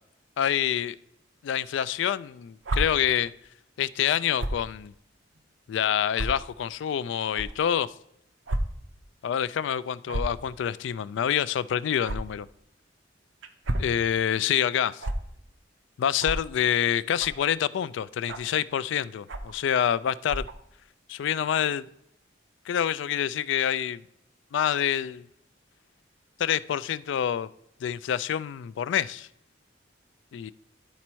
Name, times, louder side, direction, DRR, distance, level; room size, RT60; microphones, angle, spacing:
voice 1, 0.4-1.0 1.4-3.3 3.8-4.9 5.7-7.9 9.2-12.5 13.8-15.0 16.0-20.4 21.1-21.8 22.7-24.0 24.5-25.2 26.4-27.5 27.8-29.3 30.3-30.5, left 9 dB, 70° left, 18 dB, 0.3 m, -27 dB
sound 1, 2.6-2.8 4.4-4.6 5.3-5.4 6.1-6.3 7.3-7.5 8.5-8.6 8.9-9.1 10.0-10.4 12.0-12.2 13.4-13.9 15.0-15.1 16.2-16.4 17.2-17.4 18.3-18.5 19.3-19.6 20.2-20.5, right 1 dB, 85° right, 0.7 m, -30 dB
11.0 x 4.2 x 4.5 m, 0.79 s
head